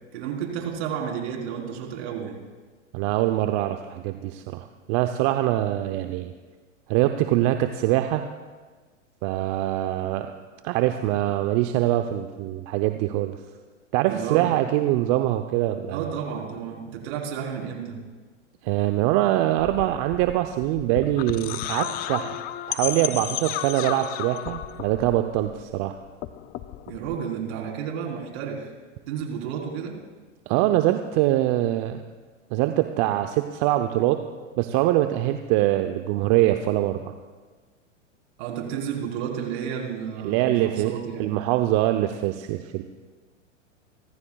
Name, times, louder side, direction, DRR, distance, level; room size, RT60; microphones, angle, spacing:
voice 1, 0.1-2.4 14.0-14.5 15.9-18.0 26.9-28.7 29.1-30.0 38.4-41.4, right 7 dB, 55° right, 1 dB, 4.1 m, -32 dB
voice 2, 2.9-6.3 6.9-8.2 9.2-10.3 10.6-13.4 13.9-16.1 18.6-22.4 22.7-26.0 30.5-32.0 32.5-34.2 34.6-37.0 40.2-42.8, right 14 dB, 40° right, 7 dB, 0.7 m, -23 dB
sound 1, 19.6-25.8 26.1-27.2, left 13 dB, 25° left, 0.5 m, -33 dB
30.0 x 14.5 x 2.4 m, 1.4 s
hypercardioid pair, 110°, 38 cm